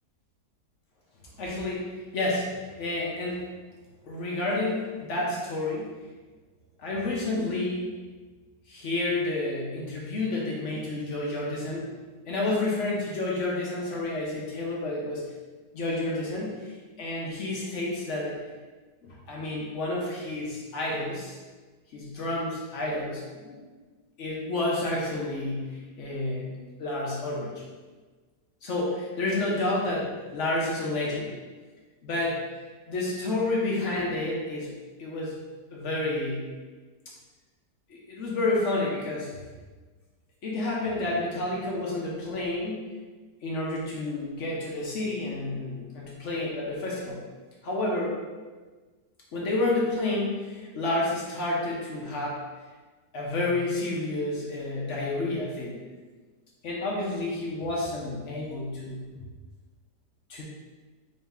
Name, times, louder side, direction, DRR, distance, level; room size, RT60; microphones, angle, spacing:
voice 1, 1.4-3.5 4.0-5.9 6.8-7.9 8.7-11.9 12.3-15.3 15.7-18.4 19.0-21.4 21.9-23.6 24.2-27.5 28.6-31.3 32.0-32.4 32.9-34.7 35.0-35.3 35.7-36.5 37.9-39.4 40.4-42.8 43.4-47.2 47.6-48.2 49.3-52.4 53.1-55.8 56.6-59.1 60.3-60.4, left 2 dB, 60° left, -3 dB, 0.9 m, -30 dB
3.9 x 2.7 x 3.5 m, 1.3 s
omnidirectional pair, 1.8 m